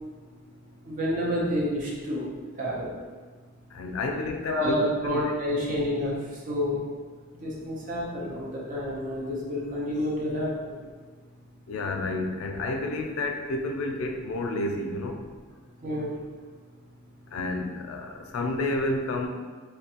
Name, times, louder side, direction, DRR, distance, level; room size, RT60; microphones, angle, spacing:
voice 1, 0.8-2.2 2.6-2.9 4.4-6.1 6.5-6.8 7.4-10.7 15.8-16.1, left 1 dB, 40° right, -5 dB, 0.6 m, -29 dB
voice 2, 3.7-4.8 5.0-5.2 11.7-15.2 17.3-19.3, left 2 dB, 90° left, 3 dB, 0.4 m, -30 dB
2.5 x 2.2 x 2.7 m, 1.5 s
head